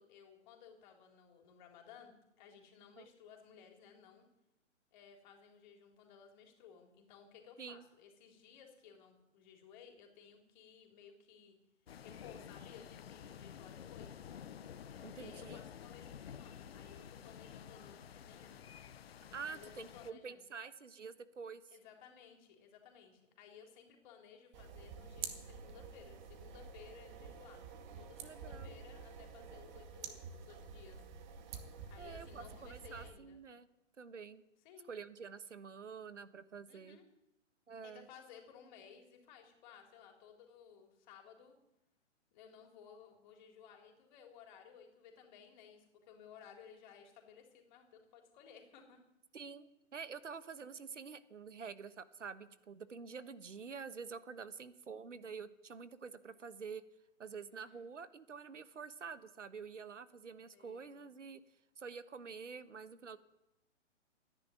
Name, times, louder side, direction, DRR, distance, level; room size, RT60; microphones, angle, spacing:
voice 1, 0.0-4.3 4.9-11.6 12.0-14.2 15.2-18.6 19.5-20.4 21.7-27.6 27.9-31.0 31.9-33.4 34.6-34.9 36.7-37.1 37.8-41.6 42.3-49.0 57.5-57.9 60.5-61.0, left 7 dB, 35° left, 3 dB, 3.7 m, -58 dB
sound 1, 11.9-20.1, left 8 dB, 55° left, 1.0 m, -51 dB
voice 2, 15.0-15.6 19.3-21.6 28.2-28.8 32.0-33.7 34.0-34.4 34.9-37.0 37.7-38.1 49.3-56.8 57.2-61.4 61.8-63.2, right 5 dB, 70° right, 14 dB, 1.3 m, -48 dB
sound 2, 24.5-33.1, right 6 dB, 35° right, 2.1 m, -49 dB
14.5 x 10.5 x 9.2 m, 0.90 s
figure-of-eight pair, 125°, 37 cm